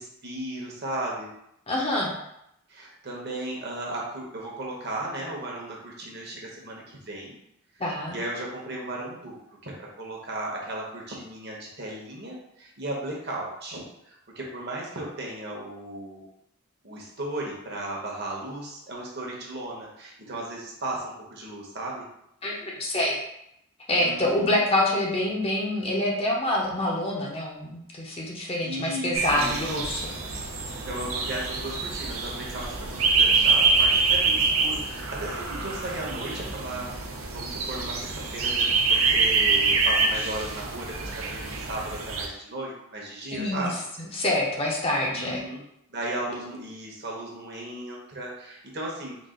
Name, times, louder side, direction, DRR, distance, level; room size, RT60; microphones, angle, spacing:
voice 1, 0.0-1.3 2.7-7.4 8.1-9.4 9.6-16.3 16.8-22.0 24.0-24.6 28.6-29.6 30.7-36.9 37.3-43.8 45.1-45.6 45.9-49.2, right 1 dB, 50° right, -2 dB, 1.0 m, -36 dB
voice 2, 1.7-2.1 7.8-8.2 22.4-23.2 23.9-30.1 43.3-43.7 44.1-45.4, left 1 dB, 25° left, -2 dB, 0.6 m, -26 dB
sound 1, 29.1-42.3, right 4 dB, 80° right, 0.6 m, -25 dB
3.9 x 2.4 x 3.7 m, 0.78 s
head